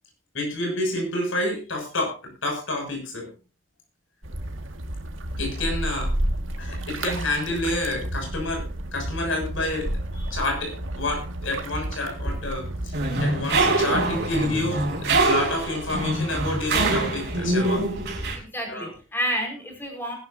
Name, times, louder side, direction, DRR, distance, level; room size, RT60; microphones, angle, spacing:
voice 1, 0.3-2.1 2.4-3.3 5.4-6.1 6.6-17.9 18.7-18.9, left 1 dB, 80° left, 2 dB, 6.8 m, -29 dB
sound 1, 4.2-13.1, right 1 dB, 80° right, 1.9 m, -31 dB
sound 2, 12.9-18.4, right 2 dB, 55° right, 5.1 m, -24 dB
voice 2, 18.3-20.2, equal, 10° left, 2 dB, 5.0 m, -30 dB
20.0 x 12.0 x 2.7 m, 0.33 s
head